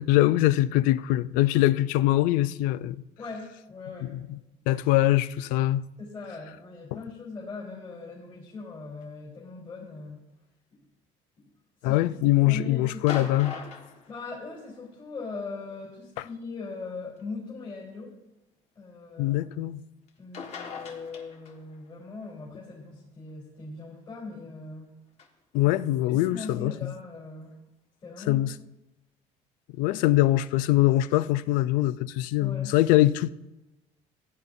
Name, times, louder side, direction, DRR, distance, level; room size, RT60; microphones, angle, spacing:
voice 1, 0.0-3.0 4.0-4.4 4.7-5.8 11.8-13.5 19.2-19.8 25.5-26.9 28.3-28.5 29.8-33.3, left 15 dB, 85° left, 0.4 m, -23 dB
voice 2, 3.2-4.2 6.0-10.2 11.8-12.0 12.4-13.3 14.1-18.1 18.8-19.4 20.2-24.9 26.1-27.6 28.0-28.4 32.4-32.7, left 4 dB, 35° left, 3.6 m, -40 dB
sound 1, 12.9-14.9 16.1-16.3 17.2-17.3 20.1-20.2 20.3-21.8 25.2-25.3, left 5 dB, 55° left, 1.5 m, -40 dB
16.5 x 9.6 x 2.6 m
cardioid pair, 115°, 14 cm